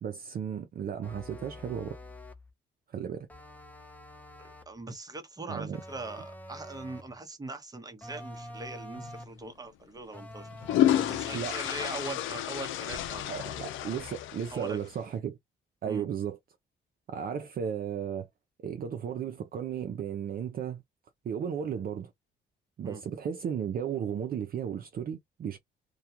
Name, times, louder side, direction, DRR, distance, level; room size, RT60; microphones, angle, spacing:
voice 1, 0.0-2.0 2.9-3.3 5.5-5.8 11.3-11.6 13.3-15.4 15.8-16.4 17.1-18.3 18.6-20.8 21.2-22.1 22.8-25.6, right 8 dB, 50° right, 0.5 m, -34 dB
sound 1, 1.0-2.5 3.3-4.8 5.7-7.2 8.0-9.4 10.1-11.6, left 1 dB, 10° left, 0.6 m, -46 dB
voice 2, 4.4-13.5 14.5-14.9 15.8-16.1 22.8-23.0, right 2 dB, 20° right, 0.9 m, -41 dB
sound 2, 9.0-9.2 10.3-14.9, left 11 dB, 80° left, 0.4 m, -30 dB
2.3 x 2.2 x 2.8 m
cardioid pair, 90°, 20 cm